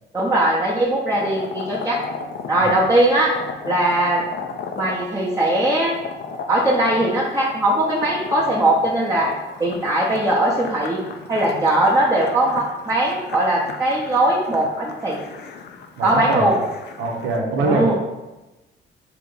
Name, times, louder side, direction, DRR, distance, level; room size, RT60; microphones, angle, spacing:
voice 1, 0.1-2.0 2.5-3.3 3.6-4.2 4.8-6.0 6.5-9.3 9.6-11.0 11.3-15.2 16.0-16.6 17.6-18.0, right 1 dB, 15° right, -5 dB, 0.7 m, -20 dB
sound 1, 1.1-17.4, left 5 dB, 60° left, 0.5 m, -35 dB
voice 2, 16.0-16.5 17.0-17.9, right 2 dB, 80° right, 0 dB, 0.8 m, -23 dB
3.4 x 2.9 x 3.8 m, 1.1 s
cardioid pair, 90°, 20 cm